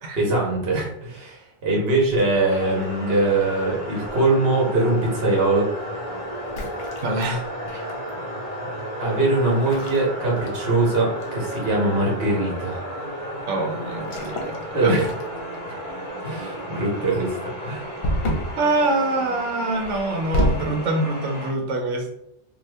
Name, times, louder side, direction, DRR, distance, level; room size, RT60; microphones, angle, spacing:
voice 1, 0.2-5.7 7.7-7.8 9.0-12.8 14.7-15.1 15.7-15.8 16.2-17.9, right 2 dB, 60° right, -3 dB, 1.1 m, -22 dB
sound 1, 2.1-2.8 4.0-4.4 6.4-8.1 9.5-10.9 11.2-11.5 14.0-14.6 15.0-15.5 18.0-18.6 19.8-20.8, equal, 60° left, 0.8 m, -28 dB
sound 2, 2.5-21.5, equal, 35° right, 1.0 m, -33 dB
voice 2, 7.0-7.4 13.5-15.0 18.6-22.1, right 2 dB, 85° right, 2 dB, 1.0 m, -25 dB
2.7 x 2.4 x 3.3 m, 0.79 s
omnidirectional pair, 1.2 m